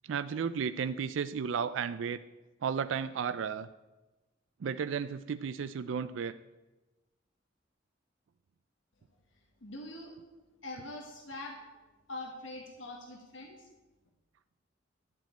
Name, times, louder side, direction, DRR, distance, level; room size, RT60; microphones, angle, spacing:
voice 1, 0.0-2.2 2.6-3.7 4.6-6.3, right 6 dB, 90° right, 12 dB, 0.4 m, -33 dB
voice 2, 9.6-10.2 10.6-11.7 12.1-13.7, left 2 dB, 90° left, 2 dB, 1.4 m, -43 dB
12.0 x 5.1 x 8.7 m, 1.1 s
head